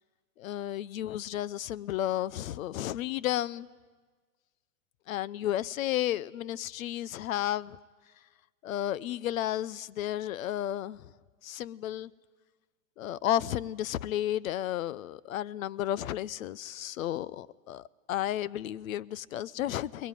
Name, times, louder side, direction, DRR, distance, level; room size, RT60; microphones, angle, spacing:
voice 1, 0.4-3.7 5.1-7.8 8.6-11.1 11.4-12.1 13.0-20.1, left 12 dB, 65° left, 0.8 m, -32 dB
21.0 x 20.5 x 9.2 m
hypercardioid pair, 130°, 45 cm